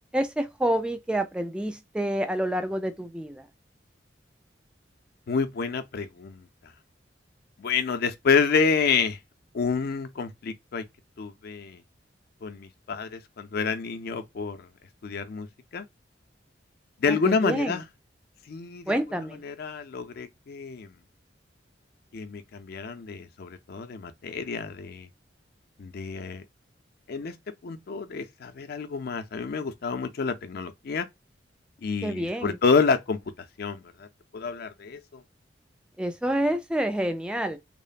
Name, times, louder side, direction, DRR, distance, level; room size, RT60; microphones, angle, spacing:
voice 1, 0.1-3.5 17.1-17.8 18.9-19.4 32.0-32.6 36.0-37.6, right 1 dB, 5° right, 0.3 m, -28 dB
voice 2, 5.3-6.4 7.6-9.2 9.5-10.8 11.2-11.8 12.4-14.7 15.0-15.5 15.7-15.8 17.0-17.8 18.5-20.9 22.1-25.1 25.8-26.4 27.1-27.4 27.6-31.1 31.8-33.2 33.6-34.1 34.3-35.2, left 5 dB, 55° left, 0.4 m, -28 dB
3.0 x 2.0 x 2.3 m
head